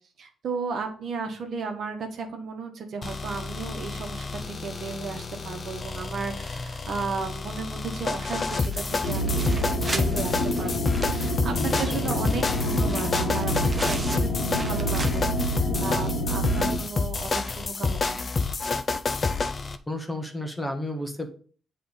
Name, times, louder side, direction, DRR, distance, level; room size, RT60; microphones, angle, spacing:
voice 1, 0.2-18.2, right 5 dB, 60° right, 4 dB, 1.3 m, -35 dB
sound 1, 3.0-19.8, left 4 dB, 35° left, 0.6 m, -29 dB
sound 2, 8.3-15.5 15.9-16.0 16.3-16.4 17.6-17.7, right 2 dB, 20° right, 0.9 m, -38 dB
sound 3, 9.0-16.8, equal, 70° left, 1.5 m, -27 dB
voice 2, 11.6-12.2 19.9-21.3, left 1 dB, 15° left, 4 dB, 1.3 m, -32 dB
7.6 x 3.4 x 5.4 m, 0.43 s
cardioid pair, 90°, 0 cm